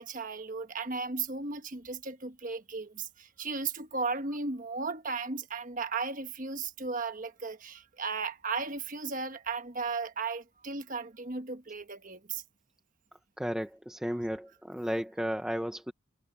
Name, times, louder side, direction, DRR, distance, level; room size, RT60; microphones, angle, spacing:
voice 1, 0.0-12.4 14.1-14.3, right 4 dB, 40° right, 1.2 m, -35 dB
voice 2, 13.4-15.9, equal, 5° right, 0.8 m, -33 dB
head